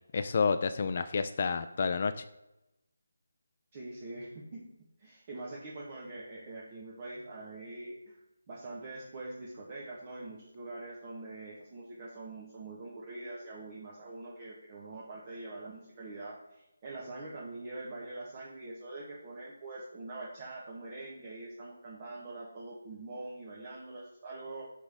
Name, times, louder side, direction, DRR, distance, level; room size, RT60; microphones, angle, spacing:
voice 1, 0.1-2.2, left 5 dB, 40° left, 10 dB, 0.3 m, -29 dB
voice 2, 3.7-4.7 5.0-8.2 8.5-24.6, right 2 dB, 25° right, -5 dB, 1.1 m, -44 dB
6.0 x 5.1 x 3.5 m, 0.94 s
figure-of-eight pair, 165°, 0 cm